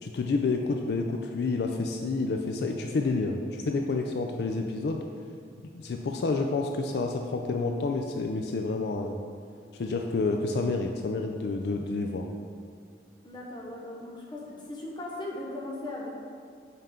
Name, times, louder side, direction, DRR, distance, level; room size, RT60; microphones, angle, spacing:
voice 1, 0.0-5.0 5.7-9.2 9.7-12.3, left 3 dB, 65° left, 3 dB, 0.3 m, -29 dB
voice 2, 13.2-16.1, left 2 dB, 25° left, -3 dB, 0.9 m, -38 dB
5.6 x 5.5 x 3.7 m, 2.2 s
head